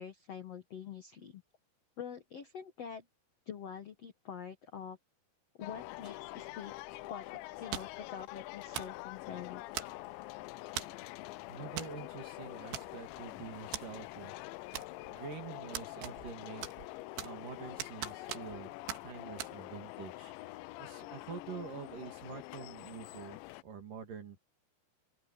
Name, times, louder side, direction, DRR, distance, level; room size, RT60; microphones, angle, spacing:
voice 1, 0.0-1.4 2.0-3.1 3.5-5.0 5.6-6.7 7.1-9.7, left 8 dB, 75° left, 1.4 m, -45 dB
sound 1, 5.6-23.6, left 19 dB, 90° left, 2.9 m, -46 dB
sound 2, 7.7-8.1 8.7-9.0 9.8-10.2 10.8-11.0 11.8-12.0 12.2-12.3 12.7-13.2 13.7-13.9 14.7-15.2 15.7-16.4 16.6-17.5 17.8-18.6 18.9-19.0 19.4-19.5, right 12 dB, 80° right, 3.7 m, -41 dB
voice 2, 11.5-14.3 15.1-16.6 17.2-18.7 19.0-20.3 20.8-24.4, right 6 dB, 50° right, 3.9 m, -46 dB
open air
omnidirectional pair, 5.1 m